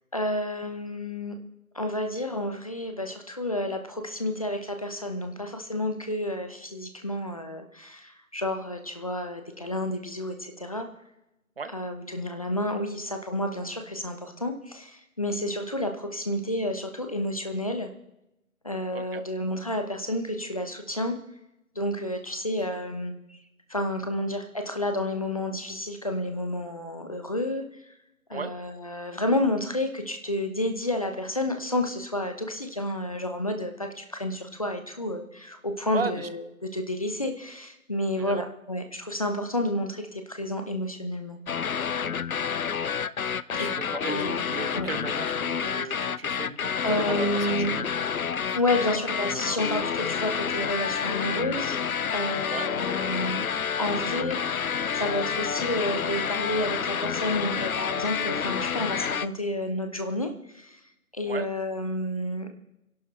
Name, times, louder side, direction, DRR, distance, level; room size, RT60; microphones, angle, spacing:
voice 1, 0.1-1.3 1.7-10.9 11.7-17.9 18.6-21.1 21.7-23.4 23.7-27.9 28.3-41.4 44.1-44.4 44.7-44.9 46.8-47.7 48.5-51.8 52.1-53.4 53.8-60.8 61.1-62.5, left 1 dB, 25° left, 6 dB, 0.9 m, -30 dB
voice 2, 35.9-36.3 38.2-38.4 43.5-48.2 48.5-48.6 52.5-52.7 61.2-61.5, right 4 dB, 40° right, 12 dB, 0.9 m, -36 dB
sound 1, 41.5-59.3, left 7 dB, 70° left, 0.7 m, -29 dB
25.0 x 11.5 x 3.3 m, 0.90 s
figure-of-eight pair, 160°, 44 cm